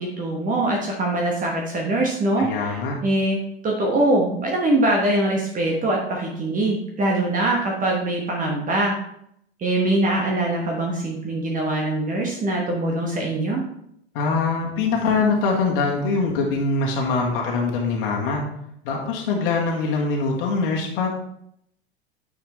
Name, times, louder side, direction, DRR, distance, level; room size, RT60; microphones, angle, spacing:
voice 1, 0.0-9.0 9.6-13.6, right 1 dB, 25° right, -1 dB, 1.3 m, -23 dB
voice 2, 2.4-3.0 14.1-18.5 18.8-21.1, left 4 dB, 55° left, -1 dB, 1.8 m, -23 dB
9.3 x 4.7 x 3.3 m, 0.73 s
figure-of-eight pair, 95°, 34 cm